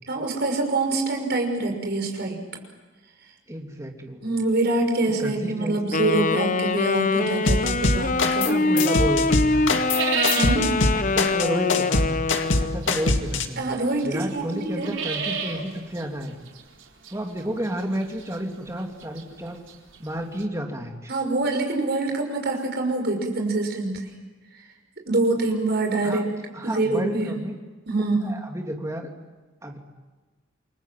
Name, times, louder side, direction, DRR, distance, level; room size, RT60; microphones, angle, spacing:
voice 1, 0.1-2.4 4.2-8.9 10.4-10.7 13.6-14.9 21.1-24.0 25.1-26.3 26.6-27.3 27.9-28.4, right 2 dB, 50° right, 3 dB, 5.9 m, -25 dB
voice 2, 3.5-4.3 5.2-5.9 8.4-9.8 10.9-12.2 12.6-13.7 14.0-16.4 17.1-19.6 20.0-21.1 26.0-26.2 26.5-27.5 28.2-29.1 29.6-29.8, equal, 15° right, 2 dB, 3.0 m, -31 dB
Wind instrument woodwind instrument, 5.9-12.9, left 3 dB, 40° left, 0.9 m, -24 dB
sound 1, 6.6-8.7 9.0-20.4, right 6 dB, 70° right, 4.3 m, -34 dB
sound 2, 7.5-8.5 8.8-13.5, left 3 dB, 70° left, 2.2 m, -23 dB
29.0 x 23.5 x 7.8 m, 1.3 s
head